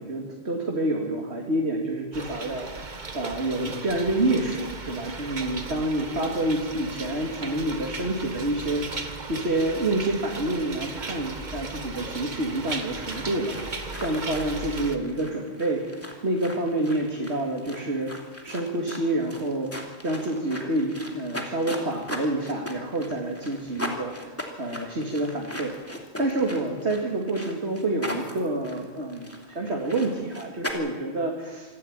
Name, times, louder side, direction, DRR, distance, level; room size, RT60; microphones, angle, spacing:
voice 1, 0.0-2.9 3.1-13.5 14.0-15.8 16.2-18.1 18.4-25.7 26.2-31.3, right 1 dB, 80° right, 0 dB, 2.7 m, -28 dB
sound 1, 2.1-15.0, right 3 dB, 45° right, 1.5 m, -36 dB
sound 2, 12.6-30.7, left 1 dB, 10° left, 2.8 m, -39 dB
26.0 x 13.0 x 8.8 m, 1.3 s
omnidirectional pair, 1.1 m